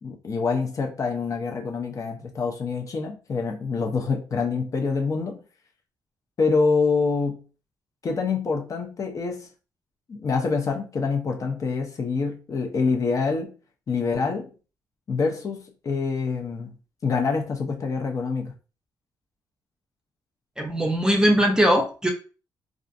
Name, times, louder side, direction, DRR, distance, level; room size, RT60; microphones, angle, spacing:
voice 1, 0.0-5.4 6.4-7.4 8.0-9.5 10.1-13.5 13.9-14.5 15.1-16.7 17.0-18.5, left 4 dB, 40° left, 0.5 m, -26 dB
voice 2, 20.6-22.1, equal, 10° right, 0.6 m, -20 dB
2.4 x 2.3 x 2.5 m
cardioid pair, 110°, 8 cm